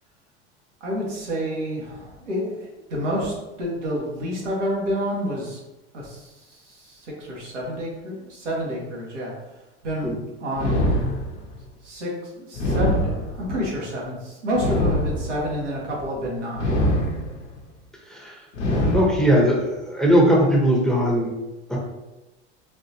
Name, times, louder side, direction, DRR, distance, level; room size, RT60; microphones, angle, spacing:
voice 1, 0.8-5.6 5.9-9.3 9.8-10.1 10.4-10.8 11.8-16.8, equal, 85° right, -4 dB, 1.3 m, -29 dB
sound 1, 10.5-11.6 12.5-13.6 14.5-15.6 16.5-17.6 18.5-19.6, equal, 75° left, 0.9 m, -24 dB
voice 2, 18.9-21.3 21.7-21.8, equal, ahead, -3 dB, 0.9 m, -19 dB
4.0 x 2.5 x 2.8 m, 1.0 s
hypercardioid pair, 80°, 35 cm